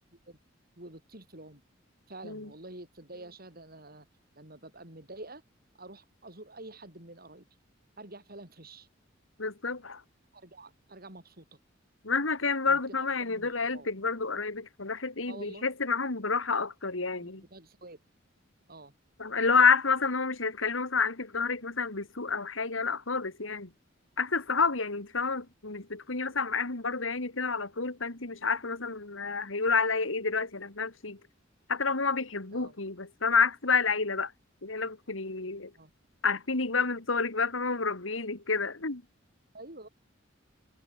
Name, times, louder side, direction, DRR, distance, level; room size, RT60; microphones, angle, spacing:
voice 1, 0.8-1.6 2.1-4.1 4.3-5.4 5.8-7.5 8.0-8.9 10.3-11.6 12.7-13.9 15.3-15.7 17.2-18.0 18.7-18.9 32.5-32.7 35.7-35.9 39.5-39.9, right 2 dB, 50° right, 8.0 m, -48 dB
voice 2, 9.4-10.0 12.0-17.4 19.2-23.7 24.2-31.2 31.7-34.3 34.6-35.7 36.2-39.0, left 4 dB, 85° left, 2.5 m, -29 dB
head